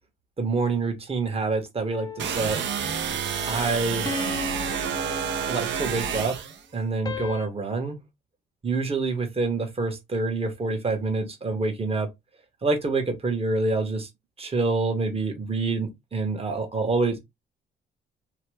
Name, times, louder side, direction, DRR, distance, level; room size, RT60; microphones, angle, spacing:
voice 1, 0.4-2.6 3.5-4.1 5.5-6.4 6.7-8.0 8.6-12.1 12.6-14.1 14.4-17.2, right 3 dB, 30° right, 1.0 m, -26 dB
sound 1, 1.9-2.9 4.1-5.9 7.0-7.5, left 3 dB, 20° left, 0.6 m, -36 dB
sound 2, 2.2-6.6, right 7 dB, 65° right, 0.6 m, -29 dB
2.8 x 2.2 x 3.3 m
cardioid pair, 90°, 20 cm